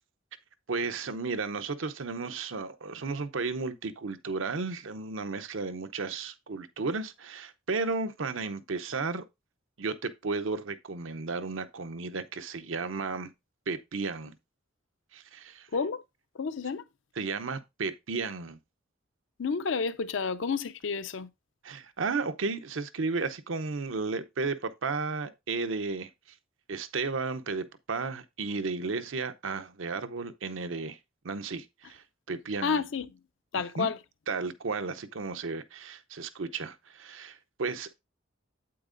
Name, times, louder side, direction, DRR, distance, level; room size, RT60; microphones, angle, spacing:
voice 1, 0.7-9.2 9.8-13.3 13.7-14.4 15.1-15.7 17.2-18.6 21.6-26.1 26.7-31.0 31.2-32.8 33.5-33.9 34.3-38.0, right 4 dB, 80° right, 0.7 m, -34 dB
voice 2, 15.7-16.0 16.4-16.8 19.4-21.3 32.6-33.1 33.5-34.0, left 5 dB, 70° left, 0.5 m, -30 dB
8.6 x 8.2 x 2.5 m
head